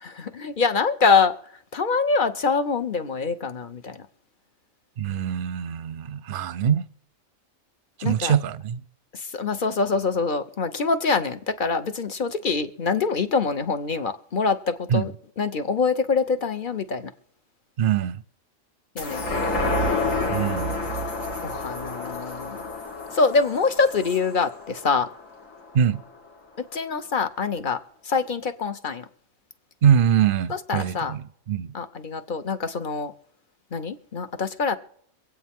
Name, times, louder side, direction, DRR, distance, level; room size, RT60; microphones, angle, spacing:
voice 1, 0.0-1.3 1.7-4.0 8.0-8.3 9.1-15.1 15.4-17.1 18.9-20.4 21.4-22.6 23.1-25.1 26.6-27.8 28.0-29.0 30.7-31.1 31.7-33.1 33.7-34.8, left 4 dB, 40° left, 1.0 m, -25 dB
voice 2, 5.0-6.8 8.0-8.8 14.9-15.1 17.8-18.2 20.3-20.7 25.7-26.0 29.8-31.7, right 8 dB, 50° right, 0.7 m, -23 dB
sound 1, 19.0-25.8 26.2-26.3, left 2 dB, 75° left, 2.2 m, -29 dB
25.5 x 8.6 x 3.6 m
omnidirectional pair, 1.4 m